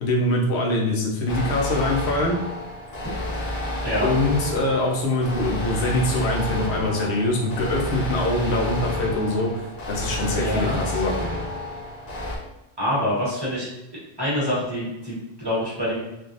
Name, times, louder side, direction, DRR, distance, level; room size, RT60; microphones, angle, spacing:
voice 1, 0.0-2.4 4.0-11.3, left 1 dB, 75° left, -2 dB, 0.9 m, -23 dB
sound 1, 1.3-12.4, left 1 dB, 50° left, 0.5 m, -30 dB
voice 2, 10.3-10.8 12.8-13.7 14.2-16.0, equal, 25° right, -9 dB, 1.1 m, -25 dB
3.3 x 2.4 x 2.6 m, 0.89 s
omnidirectional pair, 1.1 m